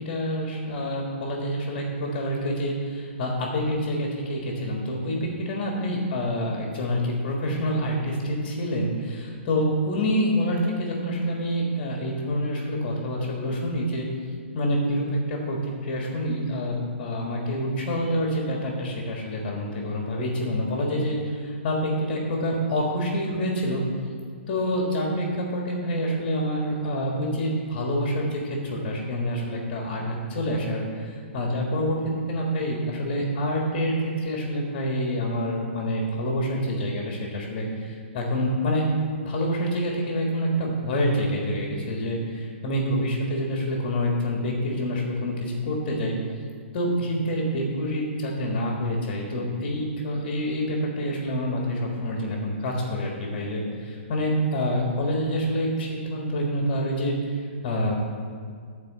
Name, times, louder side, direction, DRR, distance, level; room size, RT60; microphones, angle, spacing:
voice 1, 0.0-14.1 14.5-23.8 24.5-38.8 39.2-46.2 46.7-57.9, equal, 30° left, -1 dB, 1.7 m, -27 dB
13.0 x 4.4 x 7.5 m, 2.1 s
hypercardioid pair, 160°, 7 cm